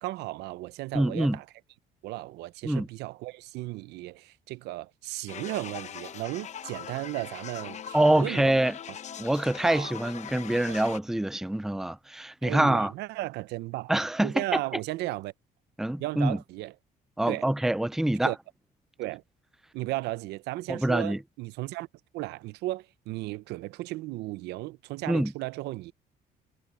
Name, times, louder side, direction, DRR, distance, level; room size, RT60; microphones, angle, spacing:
voice 1, 0.0-1.5 2.0-8.5 9.6-9.9 10.7-10.8 12.4-13.9 14.2-15.3 16.0-16.7 17.3-17.5 18.2-18.4 19.0-19.2 19.7-21.9 22.1-25.9, right 18 dB, 85° right, 0.7 m, -35 dB
voice 2, 0.9-1.4 2.6-2.9 7.9-8.7 9.2-12.9 13.9-14.6 15.8-16.4 17.2-18.3 20.7-21.2 25.1-25.3, right 1 dB, ahead, 0.5 m, -25 dB
sound 1, 5.3-11.0, left 9 dB, 45° left, 0.9 m, -41 dB
cardioid pair, 110°, 17 cm